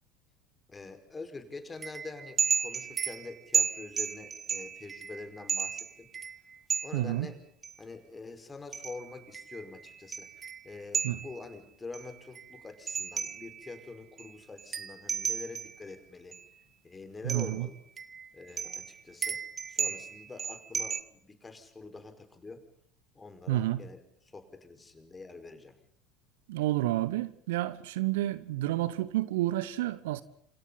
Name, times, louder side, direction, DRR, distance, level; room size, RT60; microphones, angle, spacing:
voice 1, 0.7-6.1 6.8-7.4 7.8-10.3 10.6-16.3 16.8-17.7 18.3-19.4 19.7-22.6 23.1-24.0 24.3-25.7, left 3 dB, 20° left, 5.1 m, -45 dB
sound 1, 1.8-7.0 7.6-7.7 8.7-11.4 11.9-13.8 14.2-14.3 14.6-15.8 16.3-16.4 17.3-17.7 18.0-21.0, right 6 dB, 30° right, 1.5 m, -34 dB
voice 2, 6.9-7.3 11.0-11.2 17.2-17.7 23.5-23.8 26.5-30.2, right 15 dB, 65° right, 1.1 m, -30 dB
29.0 x 28.0 x 4.2 m
figure-of-eight pair, 70°, 0 cm